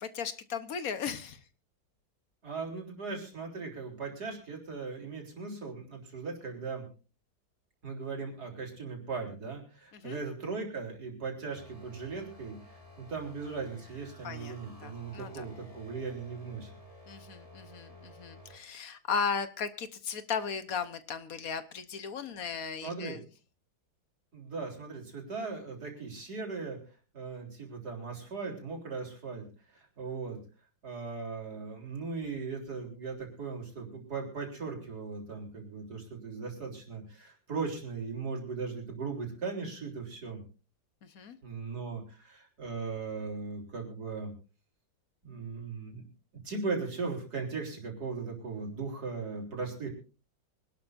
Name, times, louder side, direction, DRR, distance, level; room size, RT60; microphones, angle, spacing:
voice 1, 0.0-1.4 9.9-10.2 14.2-14.6 14.8-15.5 17.1-23.2 41.0-41.4, left 6 dB, 55° left, 11 dB, 1.3 m, -36 dB
voice 2, 2.4-6.9 7.8-16.7 22.8-23.2 24.3-26.8 27.1-29.5 29.7-30.4 30.8-40.4 41.4-44.3 45.2-46.1 46.4-49.9, right 4 dB, 55° right, 0 dB, 4.3 m, -38 dB
sound 1, 11.5-18.6, left 1 dB, 20° left, 2.2 m, -53 dB
25.0 x 12.0 x 2.6 m, 0.35 s
omnidirectional pair, 2.1 m